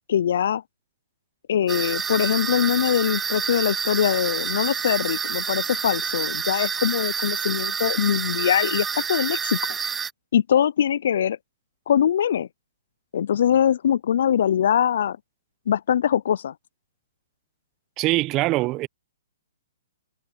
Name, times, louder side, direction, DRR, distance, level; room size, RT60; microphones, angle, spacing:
voice 1, 0.1-0.6 1.5-9.8 10.3-11.4 11.9-12.5 13.1-15.2 15.7-16.5, left 9 dB, 60° left, 0.5 m, -22 dB
sound 1, 1.7-10.1, right 6 dB, 10° right, 0.4 m, -28 dB
voice 2, 18.0-18.9, right 19 dB, 30° right, 1.0 m, -22 dB
hypercardioid pair, 130°, 0 cm